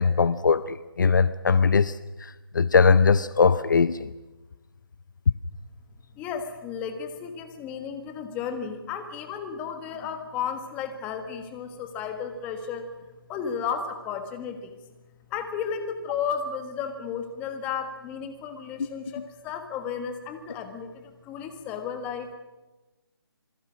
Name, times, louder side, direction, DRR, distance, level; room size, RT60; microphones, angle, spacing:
voice 1, 0.0-4.1, left 5 dB, 50° left, 16 dB, 0.7 m, -21 dB
voice 2, 6.1-12.9 13.3-14.8 15.3-22.4, left 7 dB, 10° left, 7 dB, 1.5 m, -33 dB
27.5 x 20.0 x 6.3 m, 1.1 s
hypercardioid pair, 165°, 13 cm